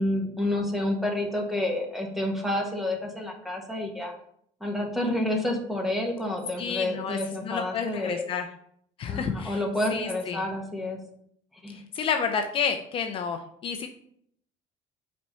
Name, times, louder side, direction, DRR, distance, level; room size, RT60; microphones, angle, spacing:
voice 1, 0.0-4.1 4.6-8.2 9.1-11.0 11.6-11.8, left 1 dB, ahead, 1 dB, 1.3 m, -29 dB
voice 2, 6.6-8.5 9.0-9.6 9.9-10.4 11.7-13.9, left 6 dB, 40° left, 6 dB, 0.6 m, -30 dB
5.2 x 4.5 x 5.6 m, 0.68 s
cardioid pair, 145°, 14 cm